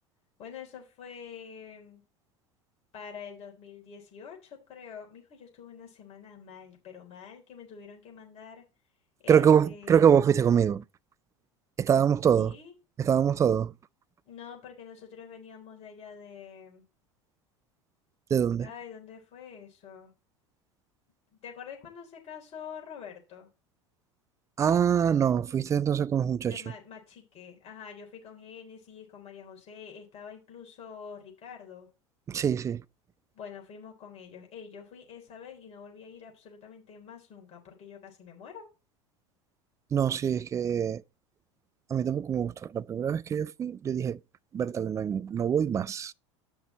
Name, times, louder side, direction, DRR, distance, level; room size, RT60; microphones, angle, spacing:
voice 1, 0.4-2.0 2.9-8.6 9.2-10.1 12.4-12.7 14.3-16.8 18.6-20.1 21.3-23.5 26.4-31.9 33.3-38.6, left 7 dB, 40° left, 3.6 m, -46 dB
voice 2, 9.3-10.8 11.8-12.5 13.0-13.7 18.3-18.7 24.6-26.6 32.3-32.8 39.9-41.0 41.9-44.2 44.5-46.1, right 8 dB, 20° right, 0.3 m, -24 dB
8.7 x 5.9 x 4.3 m
figure-of-eight pair, 75°, 16 cm